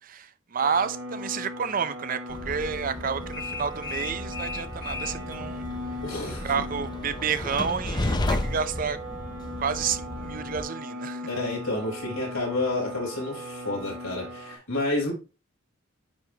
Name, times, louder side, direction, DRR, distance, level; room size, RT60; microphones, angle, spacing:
voice 1, 0.0-5.6 6.2-9.0 9.6-11.2, right 6 dB, 45° right, 0.5 m, -30 dB
sound 1, 0.6-14.6, equal, 80° right, 2.4 m, -39 dB
Train, 2.3-10.6, left 2 dB, 20° left, 0.6 m, -33 dB
voice 2, 6.0-6.5 11.3-15.1, left 2 dB, 90° left, 4.0 m, -30 dB
9.3 x 3.6 x 2.8 m
head